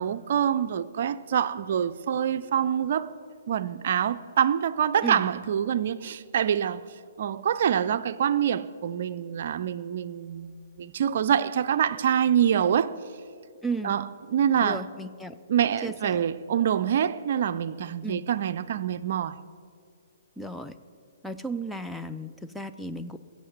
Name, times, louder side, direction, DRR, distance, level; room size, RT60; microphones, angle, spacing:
voice 1, 0.0-3.1 3.5-6.8 7.2-13.0 13.8-14.8 15.5-19.4, right 9 dB, 55° right, 0.5 m, -26 dB
voice 2, 13.6-13.9 14.6-15.4 15.7-16.2 18.0-18.2 20.4-20.7 21.2-23.2, right 2 dB, 5° left, 0.4 m, -34 dB
15.5 x 7.3 x 7.8 m
figure-of-eight pair, 125°, 0 cm